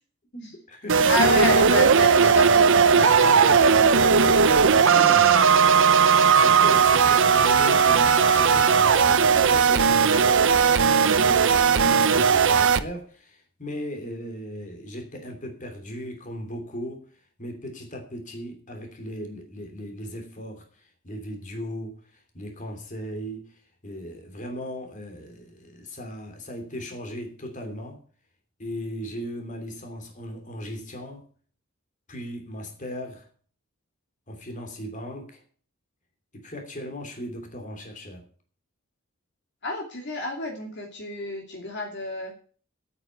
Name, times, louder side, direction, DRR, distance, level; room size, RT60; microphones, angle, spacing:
voice 1, 0.3-1.1 3.7-4.0 4.7-5.4 6.3-17.1 17.4-28.0 28.6-31.3 32.1-33.3 34.3-35.4 36.3-38.3, equal, 35° left, 3.0 m, -37 dB
sound 1, 0.9-12.8, right 6 dB, 60° right, 0.8 m, -18 dB
voice 2, 1.1-3.7 4.0-5.1 39.6-42.3, left 1 dB, 55° left, 2.7 m, -29 dB
8.9 x 8.8 x 9.4 m
head